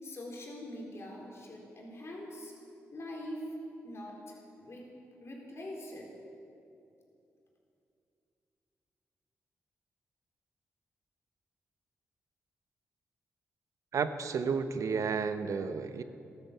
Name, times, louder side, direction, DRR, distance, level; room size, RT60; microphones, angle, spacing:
voice 1, 0.0-2.5 2.9-3.5 3.8-4.9 5.2-6.1, left 1 dB, 55° left, -1 dB, 3.9 m, -43 dB
voice 2, 13.9-16.0, right 5 dB, 70° right, 11 dB, 0.8 m, -32 dB
14.5 x 12.0 x 7.0 m, 2.7 s
supercardioid pair, 45°, 6 cm